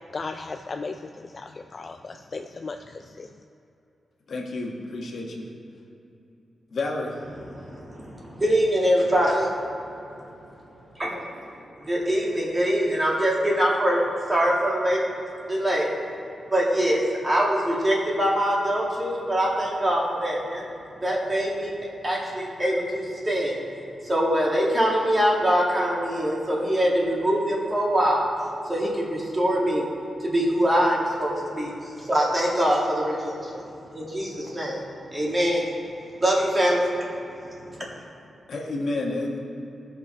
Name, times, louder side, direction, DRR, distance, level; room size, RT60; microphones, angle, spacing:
voice 1, 0.1-3.3, left 4 dB, 35° left, 5 dB, 0.3 m, -36 dB
voice 2, 4.3-5.5 6.7-7.2 38.5-39.4, left 2 dB, 55° left, -1 dB, 1.3 m, -30 dB
voice 3, 7.5-9.5 11.0-11.5 11.8-14.0 14.3-15.0 15.5-15.9 16.5-20.6 21.0-21.7 22.0-23.6 24.0-28.3 28.7-29.8 30.2-33.6 33.9-34.8 35.1-35.6 36.2-37.1 37.6-37.8, equal, 20° right, -3 dB, 1.9 m, -23 dB
17.0 x 5.9 x 4.3 m, 2.9 s
wide cardioid pair, 145°, 0 cm